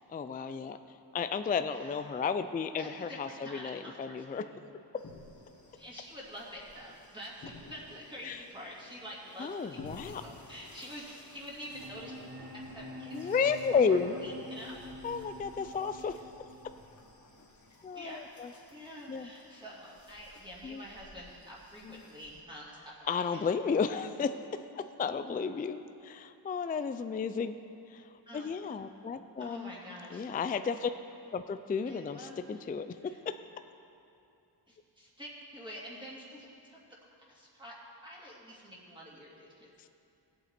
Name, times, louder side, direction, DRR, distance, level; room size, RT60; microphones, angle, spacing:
voice 1, 0.1-0.8 1.1-4.4 8.2-8.4 9.4-10.2 13.1-14.1 15.0-16.1 17.8-18.5 19.1-19.3 20.6-20.8 21.8-22.0 23.1-24.3 24.7-27.6 27.9-28.0 28.3-29.7 30.1-30.9 31.3-32.9 33.3-33.4, left 5 dB, 20° left, 10 dB, 0.3 m, -32 dB
voice 2, 1.7-2.2 2.8-4.6 5.8-12.3 12.5-14.8 18.0-18.3 18.7-23.4 28.3-28.5 29.4-30.3 31.9-32.6 33.0-33.2 34.7-36.5 37.3-37.7 38.0-39.7, equal, 10° right, -6 dB, 2.3 m, -47 dB
sound 1, 5.0-22.4, left 2 dB, 40° left, 1.7 m, -55 dB
sound 2, 11.7-17.7, left 1 dB, 55° right, 2.0 m, -47 dB
16.5 x 8.2 x 4.3 m, 2.6 s
wide cardioid pair, 90°, 45 cm